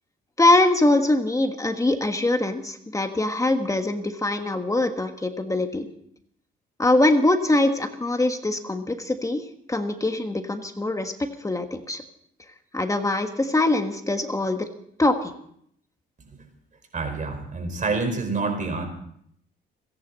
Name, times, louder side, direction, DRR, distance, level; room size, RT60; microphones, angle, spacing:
voice 1, 0.4-5.9 6.8-9.4 9.7-11.1 11.4-12.0 12.7-14.7 15.0-15.3, left 2 dB, 15° left, 6 dB, 1.5 m, -23 dB
voice 2, 16.9-18.8, right 3 dB, 40° right, 5 dB, 4.9 m, -27 dB
29.5 x 10.5 x 4.2 m, 0.67 s
cardioid pair, 90°, 20 cm